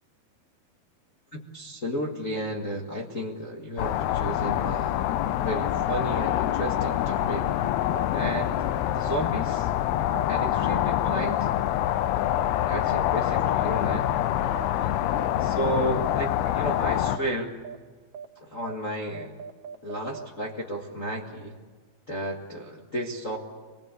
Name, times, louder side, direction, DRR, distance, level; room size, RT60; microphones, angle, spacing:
voice 1, 1.3-5.0 5.3-7.5 8.1-9.7 10.3-11.5 12.6-14.1 15.4-17.6 18.4-19.3 19.8-21.5 22.1-23.4, equal, 50° left, -2 dB, 0.9 m, -32 dB
sound 1, 3.8-17.2, left 12 dB, 85° left, 2.8 m, -26 dB
sound 2, 4.6-4.8 5.7-5.9 6.8-7.0 7.9-8.1 9.0-9.2 10.1-10.3 11.2-11.4 12.3-12.5 13.4-13.6 14.5-14.7 15.1-15.3 15.6-15.8 16.1-16.3 16.6-16.8 17.1-17.3 17.6-17.8 18.1-18.3 18.6-18.8 19.1-20.3, right 7 dB, 80° right, 3.0 m, -39 dB
25.5 x 21.0 x 8.3 m, 1.5 s
omnidirectional pair, 4.5 m